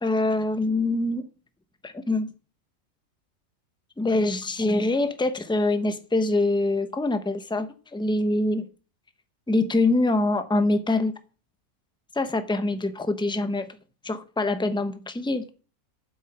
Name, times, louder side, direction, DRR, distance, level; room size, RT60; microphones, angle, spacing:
voice 1, 0.0-1.3 1.8-2.3 4.0-8.7 9.5-11.1 12.1-13.8 14.0-15.5, left 2 dB, 5° left, 0.7 m, -24 dB
7.8 x 6.6 x 8.0 m
omnidirectional pair, 1.5 m